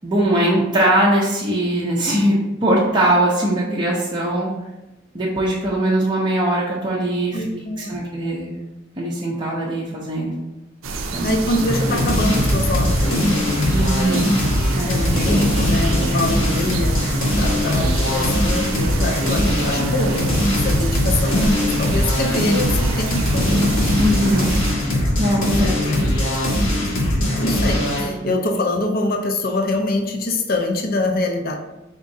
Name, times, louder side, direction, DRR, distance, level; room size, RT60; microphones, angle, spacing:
voice 1, 0.0-4.5 5.1-8.5 9.0-10.3 11.1-11.4 13.7-14.3 14.7-14.9 15.2-15.3 24.0-24.5 25.2-26.1 28.0-28.3, right 1 dB, 20° right, -5 dB, 0.5 m, -21 dB
voice 2, 7.3-8.0 11.2-13.5 14.8-23.6 25.5-25.8 27.2-31.6, left 2 dB, 45° left, 4 dB, 0.5 m, -24 dB
sound 1, 10.8-24.7, right 3 dB, 85° right, 0.5 m, -28 dB
sound 2, 11.6-28.1, left 1 dB, 80° left, 1.3 m, -20 dB
4.3 x 3.7 x 2.6 m, 1.0 s
head